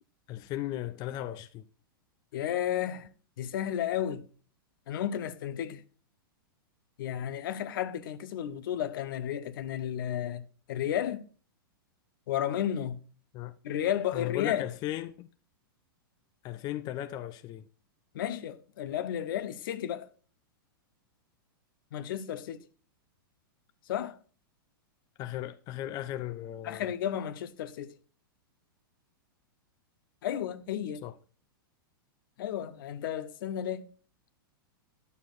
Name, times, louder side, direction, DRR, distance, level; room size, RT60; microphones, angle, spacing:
voice 1, 0.3-1.6 13.3-13.6 14.1-15.3 16.4-17.7 25.2-26.9 31.0-31.1, left 13 dB, 35° left, 0.5 m, -36 dB
voice 2, 2.3-3.1 3.4-4.3 4.9-5.8 7.0-10.4 10.7-11.3 12.3-13.0 13.6-14.7 18.1-20.1 21.9-22.6 23.9-24.2 26.6-27.9 30.2-31.0 32.4-33.9, left 10 dB, 65° left, 0.8 m, -33 dB
10.5 x 6.8 x 2.4 m
hypercardioid pair, 120°, 12 cm